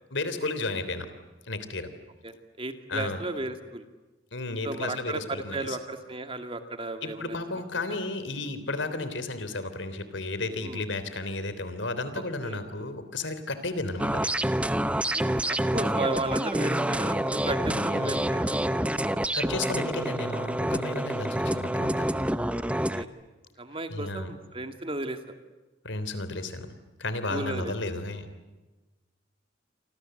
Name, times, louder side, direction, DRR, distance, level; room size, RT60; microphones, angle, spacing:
voice 1, 0.1-1.1 1.5-1.9 2.9-3.2 4.3-5.8 7.0-14.3 17.6-18.2 19.3-22.1 23.9-24.3 25.8-26.7 27.0-28.3, left 2 dB, 75° left, 11 dB, 3.5 m, -33 dB
voice 2, 2.2-3.9 4.6-7.4 10.6-10.8 12.1-12.6 15.1-18.7 19.1-19.2 21.2-21.3 23.0-23.1 23.6-25.2 27.3-27.7, right 2 dB, 30° right, 7 dB, 2.3 m, -35 dB
sound 1, 14.0-23.0, right 1 dB, 5° right, 0.8 m, -27 dB
28.5 x 25.5 x 7.9 m, 1.2 s
head